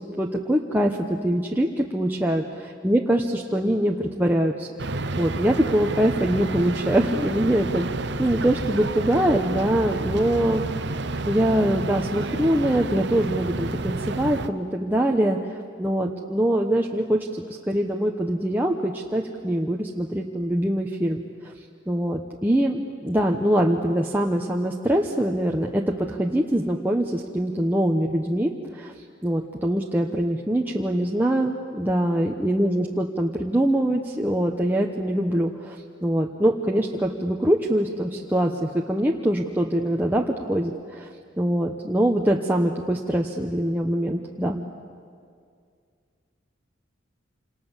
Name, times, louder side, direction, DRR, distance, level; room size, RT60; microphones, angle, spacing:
voice 1, 0.2-10.6 11.3-21.5 21.9-28.9 29.2-44.7, right 1 dB, 10° right, -1 dB, 1.1 m, -23 dB
sound 1, 4.8-14.5, right 3 dB, 60° right, 0.9 m, -30 dB
28.0 x 27.5 x 7.3 m, 2.2 s
head